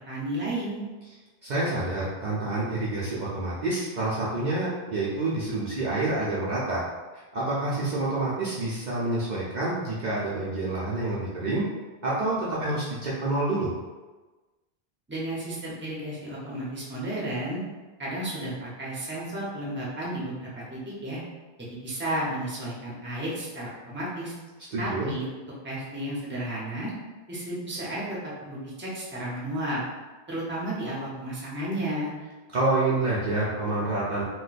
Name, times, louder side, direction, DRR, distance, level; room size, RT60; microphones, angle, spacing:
voice 1, 0.1-0.9 15.1-17.6 18.0-21.2 21.8-24.3 24.8-25.3 25.6-26.9 27.3-29.8 30.3-32.1, right 1 dB, 15° right, -6 dB, 0.7 m, -32 dB
voice 2, 1.4-6.8 7.3-11.6 12.0-13.7 24.7-25.1 32.5-34.2, right 2 dB, 55° right, -7 dB, 0.7 m, -28 dB
2.6 x 2.2 x 4.0 m, 1.3 s
omnidirectional pair, 1.0 m